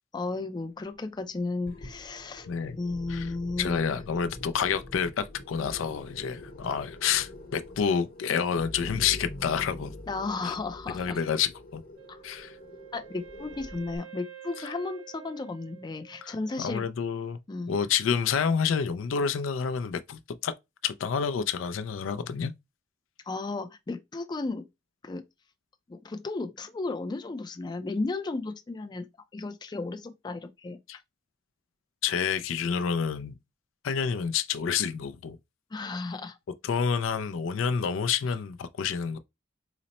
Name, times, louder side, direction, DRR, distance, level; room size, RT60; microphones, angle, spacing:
voice 1, 0.1-2.5 2.8-3.9 10.1-11.2 12.1-12.2 12.9-16.9 17.5-17.7 23.3-24.7 25.0-25.2 25.9-29.1 29.3-30.8 35.7-36.4, left 3 dB, 20° left, 0.4 m, -34 dB
sound 1, 1.7-14.0, left 1 dB, 50° left, 0.9 m, -44 dB
voice 2, 3.6-9.9 10.4-10.5 10.9-11.8 12.2-12.6 16.2-17.4 17.7-20.5 20.8-22.5 30.9-31.0 32.0-33.4 33.8-35.4 36.6-39.2, left 7 dB, 90° left, 0.4 m, -28 dB
Wind instrument woodwind instrument, 12.0-16.8, right 11 dB, 75° right, 0.8 m, -49 dB
4.0 x 2.0 x 4.0 m
head